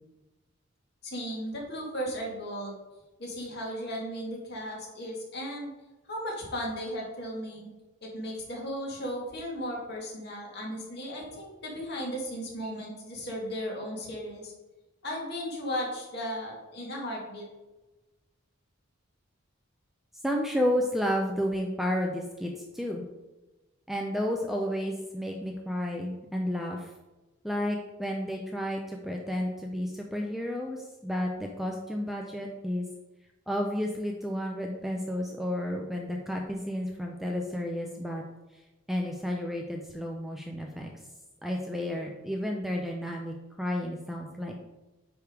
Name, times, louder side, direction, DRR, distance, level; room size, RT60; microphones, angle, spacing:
voice 1, 1.0-2.8 3.2-5.7 6.1-7.7 8.0-14.5 15.0-17.5, equal, 50° left, -3 dB, 2.2 m, -36 dB
voice 2, 20.2-23.0 23.9-26.9 27.4-32.8 33.5-38.2 38.5-38.6 38.9-40.9 41.4-44.6, equal, ahead, 1 dB, 0.5 m, -31 dB
9.4 x 3.5 x 4.7 m, 1.1 s
head